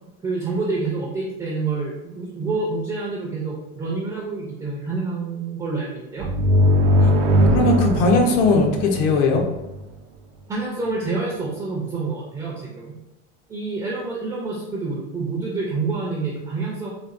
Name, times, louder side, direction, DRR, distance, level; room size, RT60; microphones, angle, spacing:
voice 1, 0.2-6.3 10.5-12.9 13.5-16.9, right 3 dB, 10° right, -4 dB, 0.4 m, -27 dB
sound 1, 6.2-9.8, equal, 85° right, 0.6 m, -19 dB
voice 2, 7.5-9.4, left 3 dB, 75° left, 2 dB, 0.8 m, -19 dB
4.1 x 2.2 x 2.4 m, 0.96 s
supercardioid pair, 140°, 36 cm